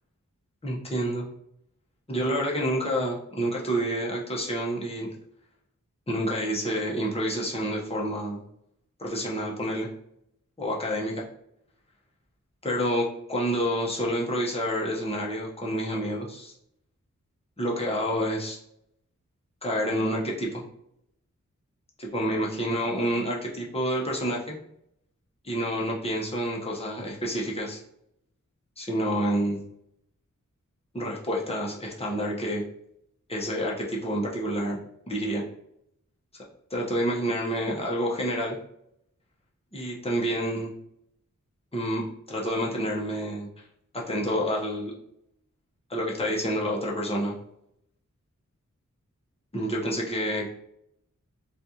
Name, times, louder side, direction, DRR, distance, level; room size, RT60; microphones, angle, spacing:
voice 1, 0.6-1.3 2.1-5.1 6.1-8.4 9.0-9.9 10.6-11.2 12.6-16.5 17.6-18.6 19.6-20.6 22.0-24.6 25.4-27.8 28.8-29.6 30.9-32.6 33.3-34.8 35.1-35.4 36.3-36.4 36.7-38.6 39.7-40.7 41.7-43.6 43.9-44.9 45.9-47.4 49.5-50.5, equal, 20° left, -3 dB, 0.9 m, -28 dB
4.1 x 2.4 x 2.8 m, 0.75 s
wide cardioid pair, 75°, 31 cm